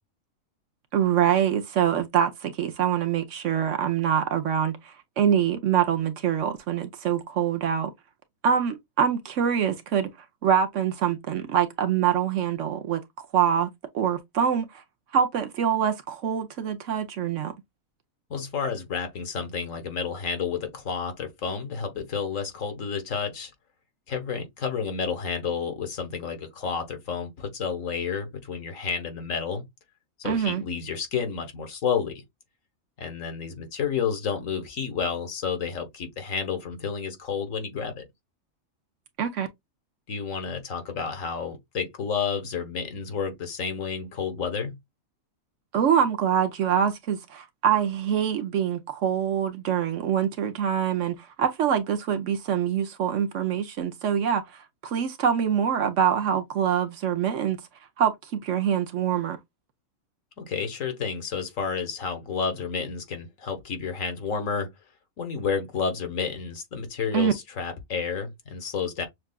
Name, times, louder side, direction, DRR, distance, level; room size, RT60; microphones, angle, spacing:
voice 1, 0.9-7.9 8.4-10.1 10.4-13.0 13.3-14.7 15.1-17.5 30.2-30.6 39.2-39.5 45.7-57.6 58.0-59.4 67.1-67.3, right 8 dB, 65° right, 1.0 m, -25 dB
voice 2, 18.3-23.5 24.1-29.6 30.2-32.1 33.0-38.0 40.1-44.7 60.4-64.7 65.2-69.1, left 6 dB, 65° left, 1.5 m, -30 dB
6.5 x 2.3 x 2.2 m
omnidirectional pair, 1.5 m